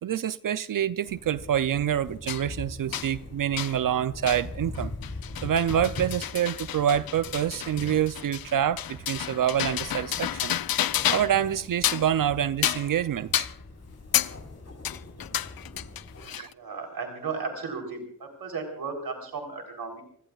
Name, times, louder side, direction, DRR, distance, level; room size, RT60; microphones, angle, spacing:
voice 1, 0.0-4.9 5.4-10.6 11.1-13.5 16.4-16.5, right 10 dB, 65° right, 0.5 m, -26 dB
sound 1, 1.1-16.3, left 2 dB, 45° left, 4.4 m, -42 dB
sound 2, 2.3-2.4 2.9-3.1 3.6-3.8 4.3-4.4 4.7-11.4 11.7-12.1 12.6-13.0 13.3-13.6 14.1-14.4 14.8-16.5, left 11 dB, 80° left, 0.6 m, -30 dB
voice 2, 16.3-20.0, right 4 dB, 85° right, 3.6 m, -35 dB
27.5 x 17.0 x 2.4 m
cardioid pair, 45°, 35 cm